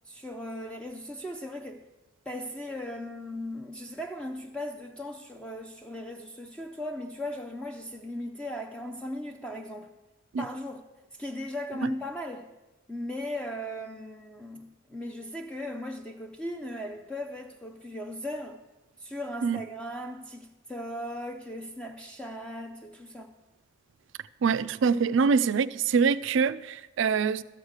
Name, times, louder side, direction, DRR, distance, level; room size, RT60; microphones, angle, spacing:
voice 1, 0.1-1.9 2.3-9.9 10.4-10.9 11.1-12.5 12.9-18.6 19.0-23.3, left 1 dB, 5° left, 0.4 m, -37 dB
voice 2, 24.4-27.4, right 5 dB, 60° right, 0.3 m, -24 dB
13.0 x 4.9 x 8.0 m
head